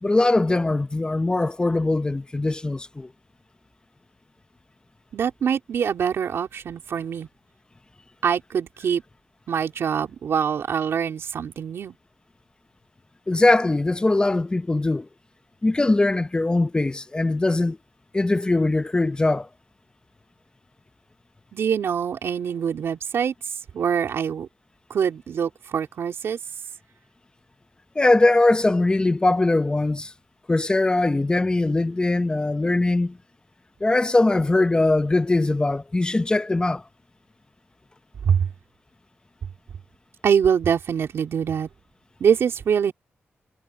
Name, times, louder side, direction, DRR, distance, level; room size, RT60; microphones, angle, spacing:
voice 1, 0.0-3.1 13.3-15.1 15.6-17.8 18.1-19.5 28.0-30.1 30.5-33.1 33.8-36.8, left 2 dB, 20° left, 0.8 m, -21 dB
voice 2, 5.1-7.3 8.2-9.0 9.5-12.0 21.5-23.3 23.7-24.5 24.9-26.4 38.2-38.5 40.2-41.7 42.2-42.9, right 7 dB, 80° right, 3.8 m, -24 dB
wide cardioid pair, 100°, 4 cm